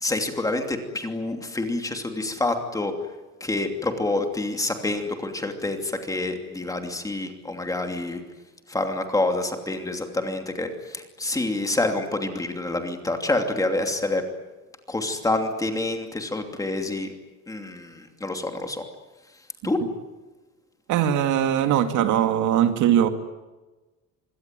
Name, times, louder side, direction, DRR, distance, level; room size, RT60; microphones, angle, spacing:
voice 1, 0.0-2.9 3.4-8.2 8.7-14.2 14.9-17.1 17.5-18.8 19.6-19.8, left 2 dB, 10° left, 4 dB, 2.8 m, -27 dB
voice 2, 20.9-23.1, right 10 dB, 65° right, 7 dB, 2.3 m, -20 dB
25.5 x 23.0 x 9.3 m, 1.2 s
cardioid pair, 165°, 32 cm